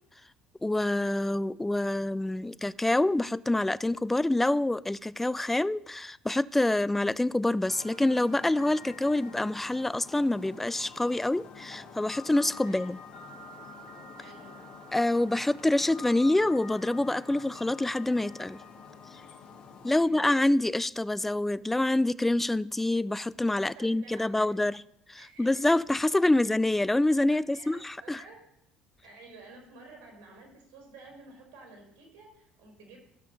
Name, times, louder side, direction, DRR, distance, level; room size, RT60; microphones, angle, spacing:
voice 1, 0.6-13.0 14.9-18.6 19.8-24.8 25.1-28.2, left 1 dB, 10° left, 0.3 m, -26 dB
sound 1, 7.7-20.0, left 5 dB, 55° left, 1.7 m, -47 dB
voice 2, 14.2-14.7 20.0-20.3 23.6-24.7 25.2-25.8 27.5-28.4 29.0-33.0, right 3 dB, 85° right, 4.3 m, -52 dB
15.0 x 6.1 x 5.3 m
supercardioid pair, 80°, 2 cm